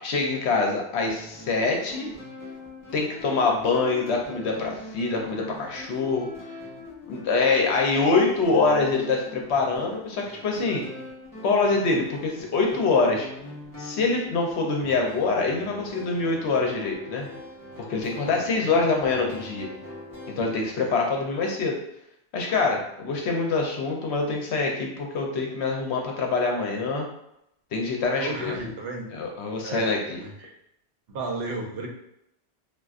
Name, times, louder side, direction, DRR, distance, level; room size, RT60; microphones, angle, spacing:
voice 1, 0.0-2.1 2.9-6.3 7.1-10.8 11.4-13.3 13.8-17.3 17.9-19.7 20.3-21.8 22.3-27.1 27.7-28.5 29.1-30.2, left 3 dB, 75° left, 1 dB, 0.9 m, -25 dB
sound 1, 1.0-20.7, left 1 dB, 20° left, 0.7 m, -42 dB
voice 2, 18.2-18.8 20.7-21.0 28.2-29.1 29.6-29.9 30.1-30.5 31.1-31.9, right 2 dB, 65° right, 1 dB, 0.8 m, -34 dB
3.5 x 2.3 x 2.4 m, 0.79 s
omnidirectional pair, 1.1 m